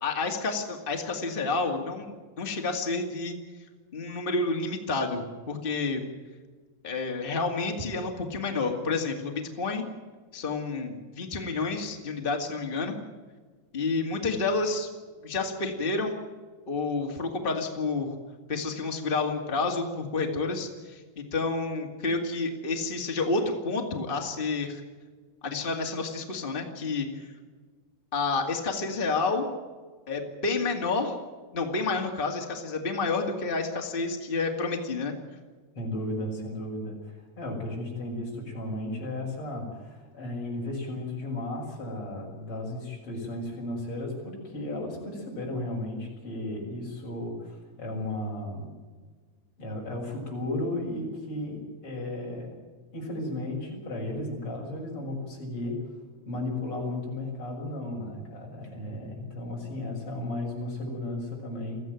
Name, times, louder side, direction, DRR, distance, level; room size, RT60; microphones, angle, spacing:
voice 1, 0.0-3.3 3.9-6.0 6.8-9.8 10.3-12.9 13.7-14.9 15.2-16.1 16.7-18.1 18.5-24.8 25.4-27.2 28.1-29.5 30.1-31.2 31.5-35.1, left 3 dB, 80° left, 2 dB, 0.5 m, -29 dB
voice 2, 35.8-48.7 49.6-52.6 52.9-55.8 56.3-61.8, left 1 dB, 30° left, -1 dB, 7.3 m, -34 dB
23.0 x 15.5 x 9.2 m, 1.4 s
omnidirectional pair, 5.3 m